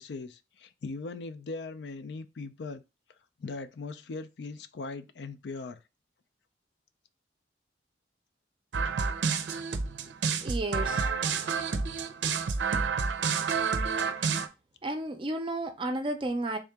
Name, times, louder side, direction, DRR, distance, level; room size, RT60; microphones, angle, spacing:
voice 1, 0.0-2.8 3.4-5.8 13.8-14.0, left 3 dB, 75° left, 0.4 m, -39 dB
sound 1, 8.7-14.5, right 5 dB, 85° right, 0.5 m, -29 dB
voice 2, 10.4-11.0 14.8-16.6, right 2 dB, 30° right, 0.4 m, -32 dB
3.7 x 2.8 x 3.4 m
head